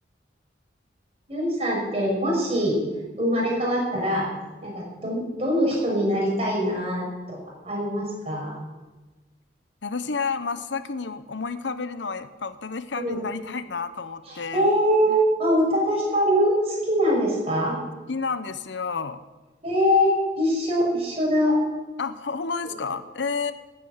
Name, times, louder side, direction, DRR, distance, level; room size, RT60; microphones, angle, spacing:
voice 1, 1.3-2.8 3.2-4.3 4.6-7.4 7.6-8.6 13.0-13.2 14.3-17.8 19.6-21.5 22.6-22.7, equal, 35° right, -3 dB, 5.9 m, -23 dB
voice 2, 9.8-14.7 15.1-15.2 18.1-19.2 22.0-23.5, left 4 dB, 85° left, 12 dB, 0.9 m, -30 dB
15.5 x 8.9 x 8.1 m, 1.2 s
head